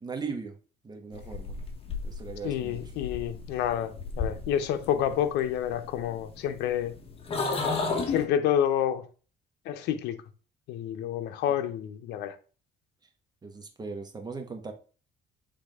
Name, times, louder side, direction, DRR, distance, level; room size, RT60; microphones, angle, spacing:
voice 1, 0.0-0.5 0.8-1.6 2.0-2.8 13.4-14.7, right 5 dB, 25° right, 1.3 m, -38 dB
sound 1, 1.1-8.3, left 4 dB, 35° left, 1.3 m, -34 dB
voice 2, 2.4-6.9 8.1-9.1 9.7-10.2 10.7-12.3, left 10 dB, 85° left, 0.7 m, -28 dB
7.3 x 3.6 x 3.5 m
cardioid pair, 110°, 17 cm